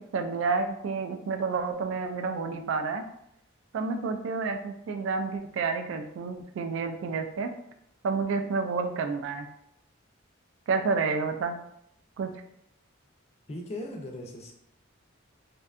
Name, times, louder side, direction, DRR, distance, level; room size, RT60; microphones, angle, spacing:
voice 1, 0.1-3.0 3.7-7.5 8.0-9.5 10.7-11.6 12.2-12.3, right 4 dB, 65° right, 6 dB, 0.3 m, -29 dB
voice 2, 13.5-14.5, left 1 dB, 30° left, 1 dB, 0.4 m, -38 dB
2.6 x 2.2 x 2.4 m, 0.74 s
head